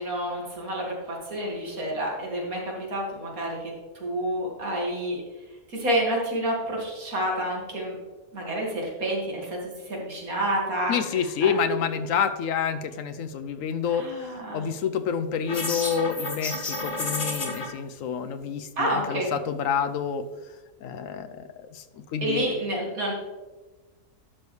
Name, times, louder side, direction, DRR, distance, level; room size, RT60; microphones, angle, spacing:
voice 1, 0.0-3.6 4.0-5.2 5.7-8.0 8.3-9.6 9.9-10.9 11.4-11.5 13.9-14.6 18.8-19.3 22.2-23.1, right 1 dB, 80° right, -2 dB, 2.5 m, -29 dB
voice 2, 10.9-14.1 14.5-20.2 20.8-21.3 21.7-21.8 22.1-22.6, left 7 dB, 75° left, 10 dB, 0.9 m, -28 dB
sound 1, 15.5-17.7, left 2 dB, 35° left, 1.4 m, -30 dB
11.5 x 6.7 x 3.2 m, 1.2 s
omnidirectional pair, 1.5 m